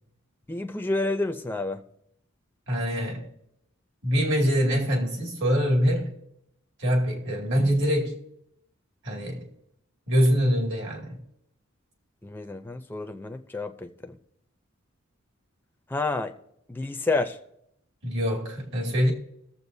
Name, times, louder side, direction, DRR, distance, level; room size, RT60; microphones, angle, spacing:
voice 1, 0.5-1.8 12.2-14.2 15.9-16.3 16.7-17.4, left 2 dB, 10° left, 0.5 m, -29 dB
voice 2, 2.7-3.3 4.0-6.1 6.8-8.2 9.0-9.5 10.1-11.2 18.0-19.1, equal, 60° right, 2.4 m, -24 dB
20.5 x 7.3 x 2.7 m
head